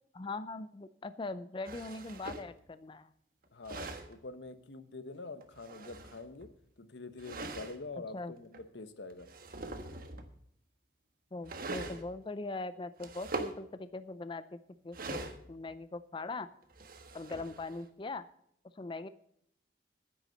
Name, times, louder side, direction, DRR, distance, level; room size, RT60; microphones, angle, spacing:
voice 1, 0.1-3.1 8.1-8.3 11.3-16.5 17.1-18.3 18.7-19.1, left 3 dB, 30° left, 13 dB, 0.5 m, -41 dB
sound 1, 1.6-2.5 3.4-4.1 5.4-6.5 7.2-7.8 8.5-8.6 9.1-10.3 11.4-12.0 13.0-13.6 14.9-15.7 16.6-17.9, right 3 dB, 55° right, 1.4 m, -42 dB
voice 2, 3.5-6.5 6.8-9.3, left 3 dB, 85° left, 12 dB, 1.0 m, -45 dB
10.0 x 9.4 x 6.5 m, 0.69 s
head